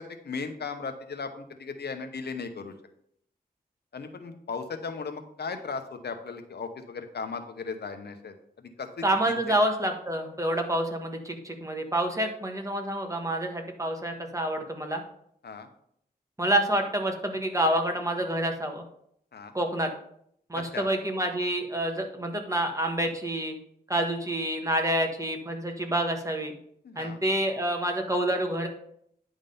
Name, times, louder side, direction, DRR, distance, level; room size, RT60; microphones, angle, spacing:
voice 1, 0.0-2.7 3.9-9.4 15.4-15.7 19.3-19.5 20.5-20.9 26.8-27.2, left 5 dB, 85° left, 7 dB, 0.8 m, -37 dB
voice 2, 9.0-15.0 16.4-18.8 19.5-19.9 20.5-23.5 23.9-26.5 27.0-28.7, right 1 dB, 20° right, 3 dB, 1.4 m, -28 dB
9.9 x 3.7 x 5.3 m, 0.70 s
wide cardioid pair, 60°, 17 cm